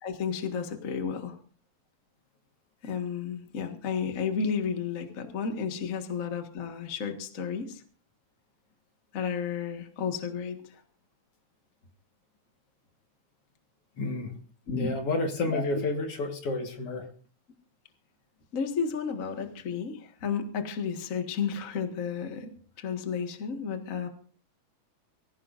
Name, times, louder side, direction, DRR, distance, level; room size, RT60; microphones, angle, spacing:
voice 1, 0.0-1.4 2.8-7.8 9.1-10.8 14.7-14.9 15.5-15.6 18.5-22.5 22.8-24.1, left 6 dB, 35° left, 5 dB, 1.6 m, -32 dB
voice 2, 14.0-14.4 14.8-17.1, left 2 dB, 55° left, 4 dB, 2.4 m, -30 dB
24.0 x 16.0 x 2.6 m, 0.43 s
omnidirectional pair, 3.4 m